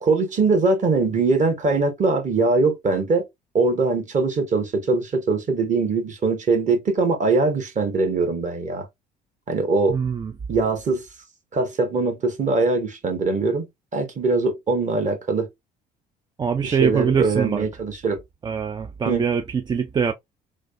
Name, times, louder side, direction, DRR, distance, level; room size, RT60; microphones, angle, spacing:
voice 1, 0.0-3.2 3.5-8.9 9.5-10.0 10.5-11.0 11.5-13.7 13.9-15.5 16.6-18.2 19.1-19.2, right 3 dB, 35° right, 1.2 m, -22 dB
voice 2, 9.9-10.3 16.4-17.7 18.4-20.1, right 6 dB, 20° right, 0.4 m, -23 dB
3.3 x 2.2 x 2.4 m
hypercardioid pair, 55°, 21 cm